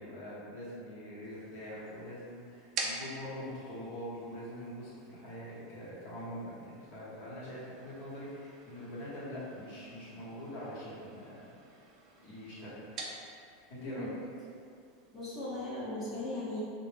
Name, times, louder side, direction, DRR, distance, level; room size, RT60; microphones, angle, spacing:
voice 1, 0.0-11.8 12.2-12.9 13.7-14.1, equal, 60° left, -9 dB, 1.0 m, -44 dB
sound 1, 1.2-15.6, right 3 dB, 35° right, 0.3 m, -48 dB
voice 2, 15.1-16.6, left 2 dB, 15° left, -11 dB, 0.7 m, -38 dB
2.3 x 2.1 x 3.3 m, 2.4 s
supercardioid pair, 155°, 0 cm